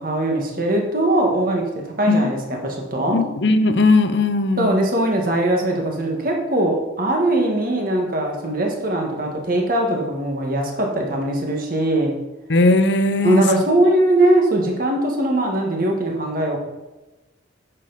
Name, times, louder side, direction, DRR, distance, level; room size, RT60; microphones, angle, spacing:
voice 1, 0.0-1.7 2.0-3.2 4.6-12.2 13.2-16.6, right 1 dB, 45° right, 1 dB, 1.6 m, -20 dB
voice 2, 3.1-4.7 12.5-13.4, left 2 dB, 55° left, 9 dB, 0.7 m, -18 dB
9.9 x 6.9 x 4.1 m, 1.1 s
head